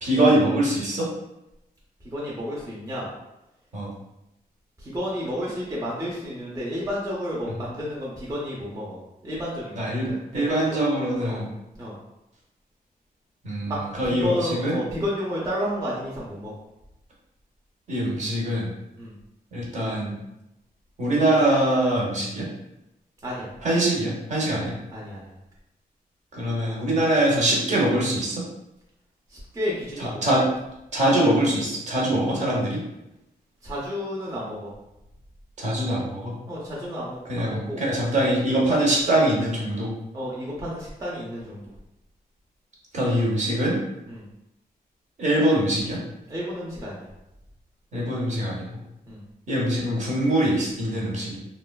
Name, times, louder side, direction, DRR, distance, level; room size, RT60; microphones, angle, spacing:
voice 1, 0.0-1.1 3.7-3.9 7.5-7.6 9.8-11.5 13.4-14.8 17.9-18.7 19.5-20.1 21.0-22.5 23.6-24.7 26.3-28.4 30.0-30.4 30.9-32.8 35.6-36.3 37.3-39.9 42.9-43.8 45.2-46.0 47.9-48.8 49.5-51.4, right 1 dB, 50° right, -4 dB, 0.8 m, -23 dB
voice 2, 2.1-3.1 4.8-10.8 11.2-11.4 11.8-12.0 13.7-13.8 14.0-16.5 19.0-19.1 23.2-23.5 24.5-24.6 24.9-25.4 29.3-30.2 33.6-34.7 36.5-37.9 40.1-41.6 44.1-44.3 46.3-47.1 49.1-49.2, equal, 20° right, -6 dB, 0.5 m, -31 dB
3.0 x 2.2 x 2.2 m, 0.90 s
wide cardioid pair, 155°, 16 cm